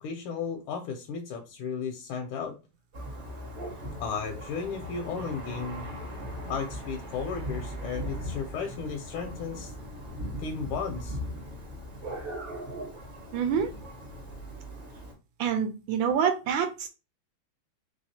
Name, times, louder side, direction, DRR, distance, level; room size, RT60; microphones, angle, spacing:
voice 1, 0.0-2.6 4.0-5.9 6.4-9.7 10.4-11.2, left 6 dB, 85° left, 4 dB, 1.4 m, -34 dB
Thunder, 2.9-15.1, equal, 40° right, 1.1 m, -39 dB
voice 2, 13.3-13.7 15.4-16.9, right 7 dB, 75° right, 7 dB, 1.3 m, -26 dB
3.4 x 3.3 x 2.7 m, 0.30 s
omnidirectional pair, 2.3 m